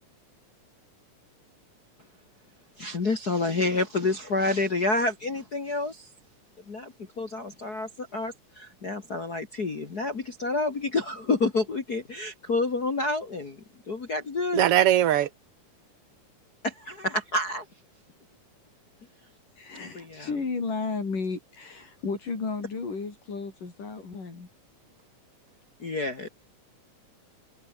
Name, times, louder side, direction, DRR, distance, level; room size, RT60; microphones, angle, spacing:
voice 1, 2.8-6.1 6.7-14.7 16.6-17.7 19.8-20.3 25.8-26.3, left 3 dB, 30° left, 2.3 m, -29 dB
voice 2, 14.5-15.3, right 11 dB, 60° right, 1.7 m, -20 dB
voice 3, 19.6-24.5, left 4 dB, 75° left, 7.7 m, -33 dB
omnidirectional pair, 3.8 m